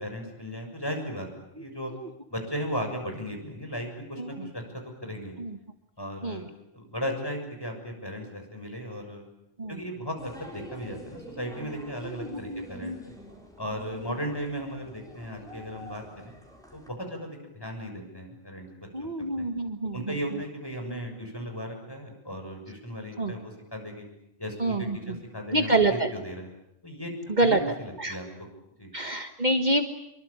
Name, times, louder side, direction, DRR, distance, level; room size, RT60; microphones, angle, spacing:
voice 1, 0.0-1.9 2.3-4.6 5.0-5.4 6.0-6.5 6.7-9.3 9.7-13.1 13.6-16.3 16.7-19.1 19.4-19.5 19.9-24.1 24.4-26.5 26.8-28.3 28.8-28.9, equal, 20° left, 3 dB, 6.9 m, -36 dB
sound 1, 10.2-16.9, equal, 5° left, 6.0 m, -47 dB
voice 2, 12.0-13.0 18.9-20.2 23.2-23.3 24.6-25.2 25.5-26.1 27.3-27.6 28.0-28.2 28.9-29.8, right 2 dB, 40° right, 6 dB, 1.6 m, -27 dB
26.5 x 24.0 x 8.8 m, 0.79 s
omnidirectional pair, 1.1 m